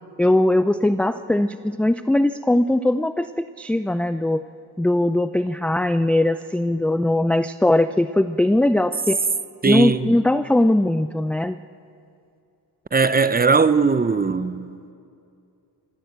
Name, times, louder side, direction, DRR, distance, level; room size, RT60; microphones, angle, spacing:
voice 1, 0.2-3.3 3.6-4.4 4.8-9.2 9.6-11.6, left 1 dB, 5° left, 0.4 m, -20 dB
voice 2, 9.6-10.1 12.9-14.7, right 4 dB, 20° right, 0.8 m, -19 dB
26.5 x 15.0 x 8.2 m
cardioid pair, 95°, 42 cm